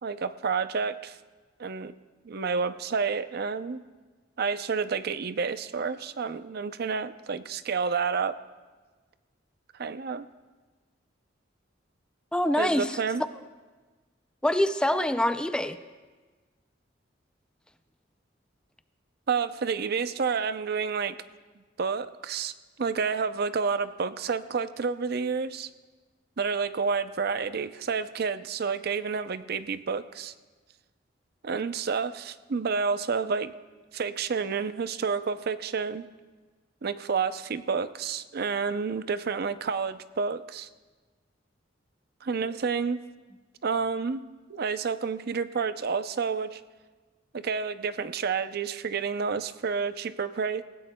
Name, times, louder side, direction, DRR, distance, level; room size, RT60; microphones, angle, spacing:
voice 1, 0.0-1.2 1.6-1.9 2.2-3.8 4.4-8.4 9.8-10.3 12.6-13.2 19.3-21.2 21.8-22.5 22.8-25.7 26.4-30.3 31.4-33.5 33.9-36.1 36.8-40.7 42.2-43.0 43.6-44.2 44.5-46.6 47.3-50.6, right 5 dB, 55° right, 12 dB, 0.5 m, -29 dB
voice 2, 12.3-13.0 14.4-15.8, left 1 dB, 5° left, 10 dB, 0.4 m, -25 dB
28.0 x 16.0 x 2.2 m, 1.3 s
head